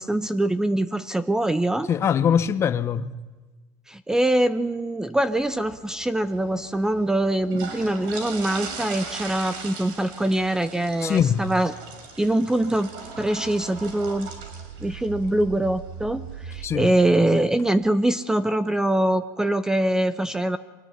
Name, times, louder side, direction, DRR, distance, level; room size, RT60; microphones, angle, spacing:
voice 1, 0.0-1.9 3.9-11.7 12.2-12.9 13.2-14.3 14.8-20.6, right 1 dB, 5° right, 0.7 m, -23 dB
voice 2, 1.9-3.2 11.0-11.4 16.6-16.9, left 8 dB, 30° left, 1.0 m, -22 dB
sound 1, 5.3-17.7, right 4 dB, 65° right, 6.3 m, -40 dB
sound 2, 12.1-16.8, right 7 dB, 85° right, 3.2 m, -41 dB
24.5 x 19.5 x 9.7 m
supercardioid pair, 135°, 9 cm